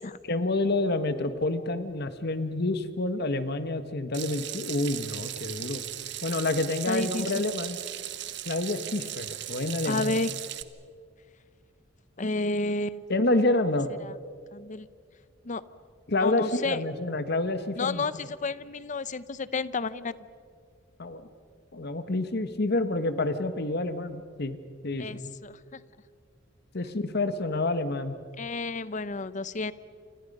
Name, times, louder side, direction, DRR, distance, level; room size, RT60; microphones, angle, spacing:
voice 1, 0.3-5.8 6.2-7.8 8.5-10.2 13.1-13.9 16.1-18.2 21.0-21.3 21.7-24.6 24.8-25.3 26.7-28.2, left 2 dB, 55° left, 10 dB, 1.3 m, -28 dB
Water tap faucet / Sink (filling or washing), 4.1-10.6, right 12 dB, 65° right, 1.1 m, -37 dB
voice 2, 6.9-7.4 9.8-10.3 12.2-13.0 14.0-14.1 14.5-14.9 15.4-15.6 16.2-16.8 17.8-20.1 25.0-25.8 28.4-29.7, left 3 dB, 40° left, 16 dB, 0.7 m, -31 dB
29.0 x 27.0 x 5.4 m, 2.1 s
head